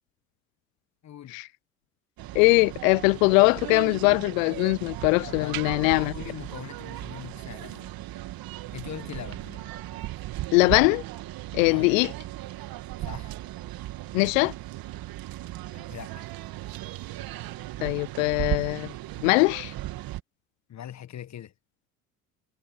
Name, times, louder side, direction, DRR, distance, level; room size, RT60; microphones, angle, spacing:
voice 1, 1.0-1.4 5.2-5.6 6.0-7.9 8.7-10.1 11.6-11.9 13.0-13.4 15.7-16.4 20.7-21.5, left 10 dB, 40° left, 1.4 m, -42 dB
sound 1, 2.2-20.2, right 16 dB, 55° right, 2.0 m, -37 dB
voice 2, 2.3-6.1 10.5-11.0 11.5-12.1 14.1-14.5 17.8-18.9 19.2-19.7, left 28 dB, 70° left, 0.6 m, -21 dB
hypercardioid pair, 60°, 41 cm